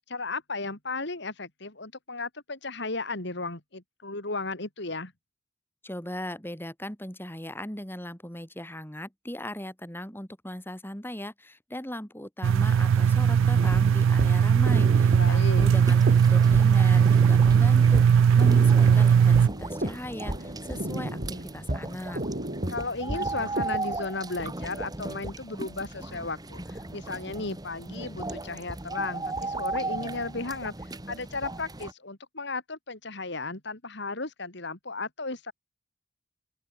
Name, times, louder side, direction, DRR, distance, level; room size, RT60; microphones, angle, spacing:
voice 1, 0.1-5.1 15.1-15.7 22.7-30.7 31.1-35.5, left 3 dB, 65° left, 3.4 m, -35 dB
voice 2, 5.8-22.2, left 1 dB, 10° left, 4.8 m, -38 dB
sound 1, 12.4-19.5, right 7 dB, 85° right, 0.3 m, -19 dB
sound 2, 13.5-23.7, right 1 dB, 45° right, 3.7 m, -34 dB
sound 3, 15.6-31.9, right 2 dB, 20° right, 1.4 m, -37 dB
open air
head